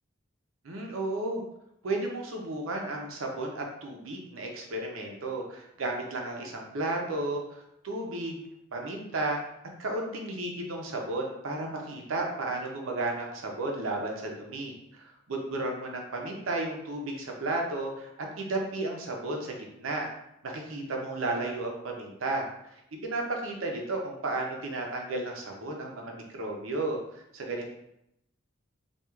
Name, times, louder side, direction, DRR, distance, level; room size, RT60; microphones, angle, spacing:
voice 1, 0.6-1.4 1.8-8.4 8.7-9.5 9.8-18.1 18.4-20.0 20.5-27.7, right 2 dB, 90° right, 1 dB, 0.6 m, -33 dB
4.4 x 2.4 x 2.3 m, 0.80 s
head